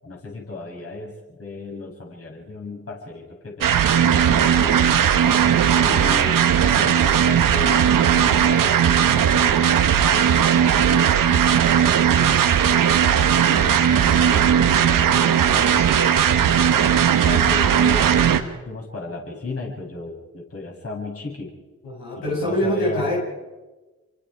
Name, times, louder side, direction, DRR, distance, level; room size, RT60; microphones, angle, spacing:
voice 1, 0.0-4.7 5.8-11.3 12.1-16.4 17.2-21.6 22.2-23.1, left 3 dB, 40° left, -2 dB, 7.5 m, -35 dB
sound 1, 3.6-18.4, right 8 dB, 70° right, 1.7 m, -17 dB
voice 2, 21.8-23.2, equal, 80° left, -4 dB, 7.2 m, -24 dB
27.5 x 24.0 x 4.9 m, 1.2 s
supercardioid pair, 50°, 35 cm